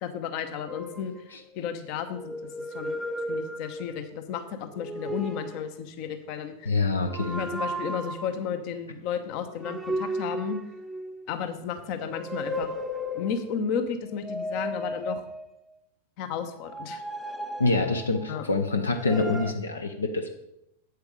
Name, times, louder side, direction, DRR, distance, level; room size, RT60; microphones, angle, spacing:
voice 1, 0.0-2.4 2.7-3.0 3.3-6.8 7.3-10.6 11.3-12.8 13.1-15.2 16.2-17.0 18.3-18.4, left 7 dB, 45° left, 9 dB, 0.9 m, -33 dB
sound 1, 0.7-1.6 2.1-4.1 4.7-5.7 7.0-8.4 9.6-11.3 11.8-13.5 14.1-15.7 16.6-18.4 18.9-19.5, equal, 5° right, 0.7 m, -35 dB
voice 2, 6.6-7.4 17.6-20.3, left 3 dB, 75° left, 6 dB, 0.8 m, -26 dB
8.2 x 8.1 x 5.0 m, 0.84 s
figure-of-eight pair, 90°, 0 cm